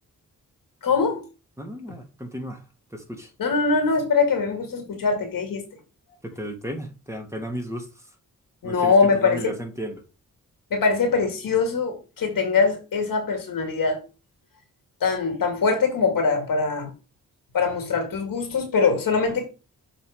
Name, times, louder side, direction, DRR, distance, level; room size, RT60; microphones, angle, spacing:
voice 1, 0.8-1.2 3.4-5.6 8.6-9.6 10.7-14.0 15.0-16.9 17.5-19.5, left 4 dB, 80° left, 2.2 m, -22 dB
voice 2, 1.6-2.6 2.9-3.3 6.2-7.9 8.6-8.9 9.2-10.0, equal, 10° right, 2.0 m, -34 dB
7.0 x 3.9 x 4.9 m
cardioid pair, 65°, 34 cm